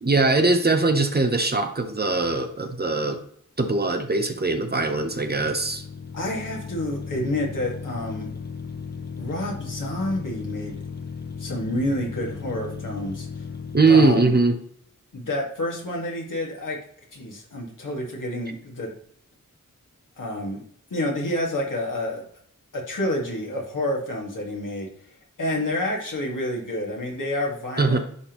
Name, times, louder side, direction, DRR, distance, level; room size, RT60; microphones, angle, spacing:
voice 1, 0.0-3.2 3.6-5.8 13.7-14.6 27.8-28.0, right 3 dB, 30° right, 6 dB, 0.9 m, -21 dB
sound 1, 4.7-14.5, left 5 dB, 30° left, 0.7 m, -36 dB
voice 2, 6.1-8.3 9.2-10.8 11.4-13.4 13.9-14.3 15.1-16.8 17.1-18.9 20.2-20.6 20.9-22.2 22.7-24.9 25.4-28.0, left 1 dB, 80° left, -2 dB, 1.9 m, -29 dB
10.5 x 3.6 x 3.0 m, 0.62 s
wide cardioid pair, 70°, 31 cm